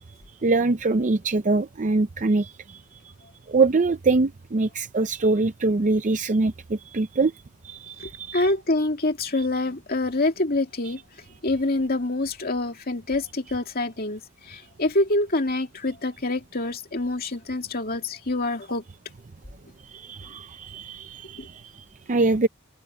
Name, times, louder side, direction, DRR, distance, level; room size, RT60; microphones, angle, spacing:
voice 1, 0.4-2.5 3.5-7.3 7.6-8.4 19.9-22.5, right 3 dB, 35° right, 0.5 m, -23 dB
voice 2, 8.3-11.0 11.4-18.8 21.4-21.5, left 2 dB, 45° left, 2.5 m, -26 dB
open air
head